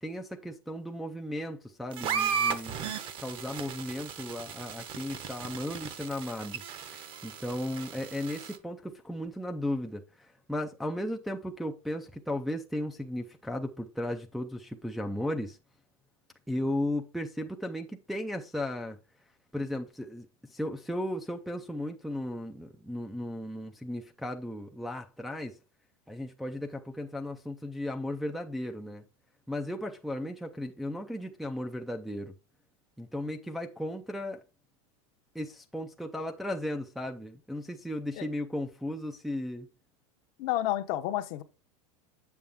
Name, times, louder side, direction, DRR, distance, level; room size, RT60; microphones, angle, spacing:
voice 1, 0.0-15.6 16.5-19.0 19.5-25.6 26.1-29.0 29.5-32.3 33.0-34.4 35.3-39.7, left 1 dB, ahead, 0.4 m, -35 dB
sound 1, 1.9-8.6, right 7 dB, 30° right, 0.8 m, -35 dB
voice 2, 40.4-41.4, left 14 dB, 45° left, 0.8 m, -30 dB
8.4 x 7.0 x 3.5 m
supercardioid pair, 165°, 18 cm